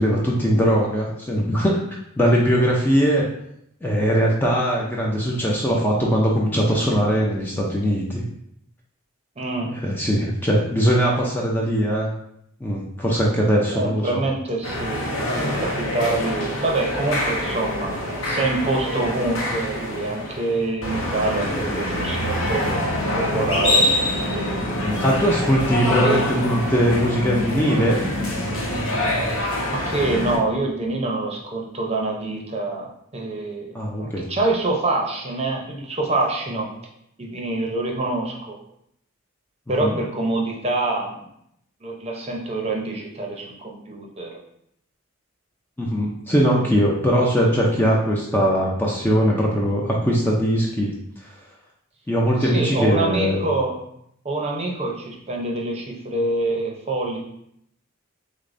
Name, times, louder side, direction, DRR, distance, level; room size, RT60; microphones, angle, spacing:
voice 1, 0.0-1.8 2.2-3.2 3.8-8.2 9.8-12.1 12.6-14.2 24.8-28.0 33.7-34.2 39.8-40.0 45.8-50.9 52.1-53.4, equal, 10° left, -3 dB, 0.4 m, -20 dB
voice 2, 9.4-9.7 13.7-23.9 26.0-26.2 29.4-36.7 37.2-38.6 39.7-41.3 41.8-44.3 46.3-46.7 52.4-53.8 54.2-57.2, right 2 dB, 30° right, -1 dB, 0.7 m, -26 dB
sound 1, 14.6-30.4, left 1 dB, 70° left, 0.9 m, -25 dB
6.4 x 2.1 x 2.6 m, 0.74 s
head